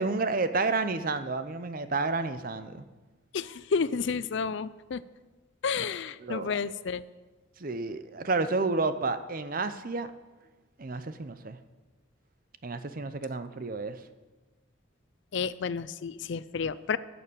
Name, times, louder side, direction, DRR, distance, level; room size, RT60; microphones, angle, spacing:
voice 1, 0.0-2.9 5.7-5.9 6.2-6.5 7.6-10.1 10.8-11.6 12.6-14.0, right 3 dB, 40° right, 11 dB, 0.6 m, -30 dB
voice 2, 3.3-5.0 5.6-7.0 15.3-17.0, left 5 dB, 60° left, 17 dB, 0.4 m, -31 dB
11.5 x 6.9 x 8.7 m, 1.2 s
head